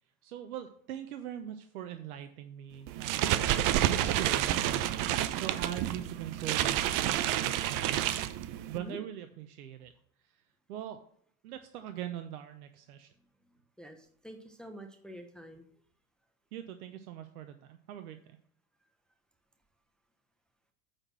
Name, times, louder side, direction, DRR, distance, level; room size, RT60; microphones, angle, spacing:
voice 1, 0.2-3.5 3.8-9.9 10.2-10.4 10.7-11.0 11.4-13.1 16.5-18.4, right 10 dB, 80° right, 8 dB, 0.8 m, -42 dB
sound 1, 2.9-8.8, right 12 dB, 50° right, 0.7 m, -29 dB
voice 2, 13.8-15.7, equal, ahead, 5 dB, 0.9 m, -47 dB
8.8 x 4.2 x 6.1 m, 0.63 s
hypercardioid pair, 95°, 43 cm